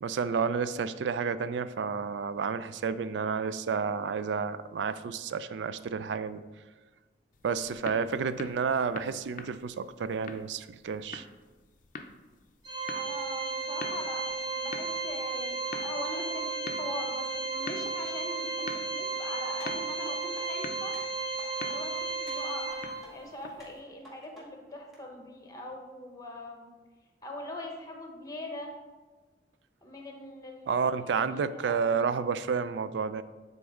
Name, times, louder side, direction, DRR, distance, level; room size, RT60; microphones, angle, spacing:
voice 1, 0.0-6.4 7.4-11.3 30.7-33.2, right 5 dB, 75° right, 14 dB, 0.3 m, -30 dB
sound 1, 7.3-23.8, left 3 dB, 45° left, 0.5 m, -47 dB
Organ, 12.6-23.3, right 4 dB, 25° right, 1.6 m, -34 dB
voice 2, 12.9-20.9 21.6-26.7 27.2-28.8 29.8-31.8, left 1 dB, 20° left, 2 dB, 1.0 m, -42 dB
sound 2, 19.6-20.5 20.9-21.8 22.3-23.1 23.6-24.5 24.9-25.0, equal, ahead, 2.0 m, -52 dB
9.2 x 4.0 x 3.7 m, 1.3 s
head